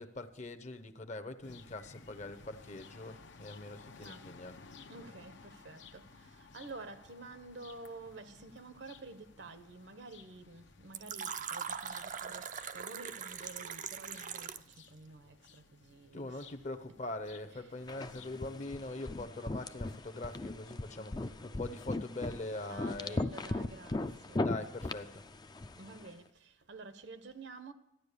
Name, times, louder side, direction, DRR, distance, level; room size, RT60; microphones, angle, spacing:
voice 1, 0.0-4.6 16.1-23.2 24.3-25.3, left 2 dB, 40° left, 0.8 m, -43 dB
sound 1, 1.4-18.7, left 4 dB, 75° left, 0.9 m, -57 dB
voice 2, 4.0-4.3 4.9-16.5 16.9-17.0 17.6-17.7 22.7-24.5 25.7-27.7, right 3 dB, 65° right, 1.0 m, -50 dB
Fill (with liquid), 10.9-14.8, right 7 dB, 45° right, 0.5 m, -41 dB
sound 2, 17.9-26.1, left 2 dB, 20° left, 0.4 m, -38 dB
14.0 x 10.5 x 6.8 m
head